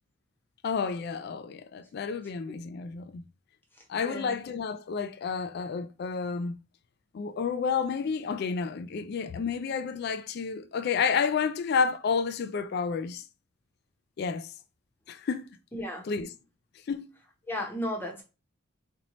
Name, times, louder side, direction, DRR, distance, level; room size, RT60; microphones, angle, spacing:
voice 1, 0.6-3.2 3.9-6.6 7.1-13.2 14.2-14.5 15.1-15.5 16.0-16.3 16.9-17.1, left 5 dB, 50° left, 0.3 m, -30 dB
voice 2, 4.0-4.3 15.7-16.0 17.5-18.2, left 1 dB, 10° left, 0.8 m, -34 dB
4.2 x 2.8 x 3.0 m
head